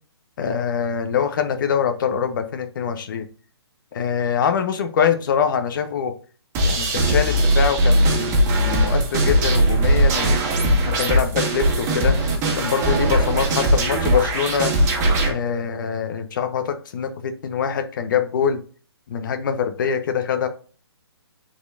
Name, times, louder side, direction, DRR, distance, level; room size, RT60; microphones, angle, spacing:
voice 1, 0.4-3.2 3.9-6.1 6.6-10.4 10.8-12.2 12.5-14.7 15.2-18.6 19.1-20.5, left 7 dB, 50° left, 8 dB, 1.1 m, -24 dB
sound 1, 6.5-15.3, right 1 dB, 20° right, 1.8 m, -19 dB
10.0 x 4.4 x 2.5 m, 0.39 s
hypercardioid pair, 145°, 14 cm